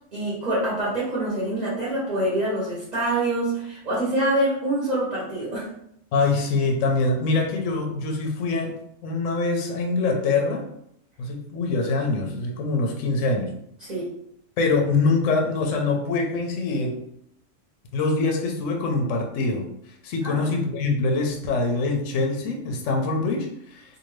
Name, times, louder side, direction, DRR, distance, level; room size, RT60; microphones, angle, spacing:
voice 1, 0.1-5.7 13.8-14.1 20.2-20.4, right 1 dB, 35° right, -8 dB, 0.9 m, -25 dB
voice 2, 6.1-8.7 9.0-10.6 11.2-13.5 14.6-17.0 17.9-19.6 20.0-23.8, left 3 dB, 65° left, 2 dB, 0.9 m, -24 dB
2.6 x 2.5 x 3.1 m, 0.73 s
omnidirectional pair, 1.6 m